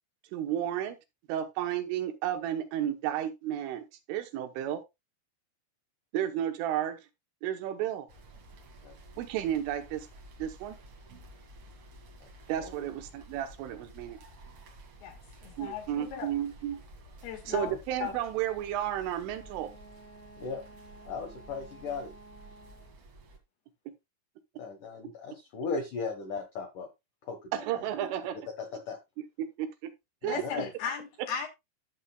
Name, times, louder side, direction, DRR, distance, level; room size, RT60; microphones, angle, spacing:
voice 1, 0.3-1.0 1.3-4.8 6.1-7.0 7.4-8.1 9.2-10.1 10.4-10.8 12.5-14.2 15.6-16.8 17.5-19.7 27.5-28.4 29.6-29.7 30.2-30.6, right 11 dB, 80° right, 3.4 m, -32 dB
sound 1, 8.1-23.4, right 1 dB, 50° right, 1.9 m, -52 dB
voice 2, 15.0-16.3 17.2-17.7 18.0-18.1 30.2-31.5, left 7 dB, 65° left, 3.1 m, -37 dB
Wind instrument woodwind instrument, 19.3-23.0, right 2 dB, 30° right, 1.5 m, -53 dB
voice 3, 21.1-22.1 24.6-26.9 27.2-27.9 28.6-29.0 30.2-30.6, left 4 dB, 85° left, 1.8 m, -37 dB
13.0 x 7.9 x 2.3 m
omnidirectional pair, 5.8 m